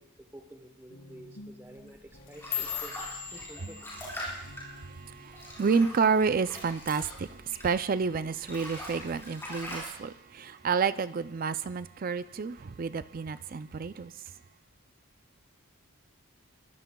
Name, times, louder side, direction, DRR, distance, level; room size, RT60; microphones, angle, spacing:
voice 1, 0.0-3.9 5.2-5.6, right 1 dB, 10° right, 1.0 m, -51 dB
Guitar, 0.9-6.1, left 1 dB, 75° left, 3.1 m, -53 dB
sound 1, 1.9-8.0 8.3-9.9, equal, 10° left, 6.4 m, -42 dB
sound 2, 2.1-6.5 6.8-7.2 7.6-8.0 8.4-8.6 9.2-9.6 10.0-10.8 11.2-11.6 12.4-12.5, left 10 dB, 45° left, 2.6 m, -41 dB
voice 2, 4.2-14.2, right 5 dB, 40° right, 0.4 m, -30 dB
23.5 x 17.0 x 2.3 m
head